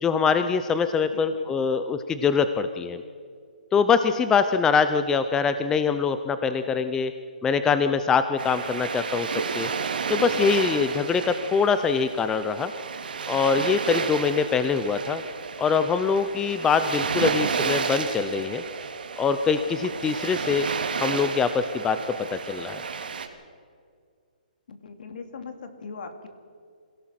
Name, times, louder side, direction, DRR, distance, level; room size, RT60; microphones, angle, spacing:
voice 1, 0.0-3.0 3.7-7.1 7.4-9.3 9.5-9.7 10.1-12.7 13.3-15.2 15.6-18.6 19.2-20.7 21.0-22.0 22.3-22.8, left 5 dB, 10° left, 10 dB, 0.6 m, -23 dB
voice 2, 1.0-1.5 24.7-26.3, left 4 dB, 65° left, 7 dB, 2.8 m, -40 dB
sound 1, 8.4-23.3, right 5 dB, 75° right, 2.5 m, -31 dB
27.5 x 17.5 x 6.0 m, 2.1 s
hypercardioid pair, 155°, 5 cm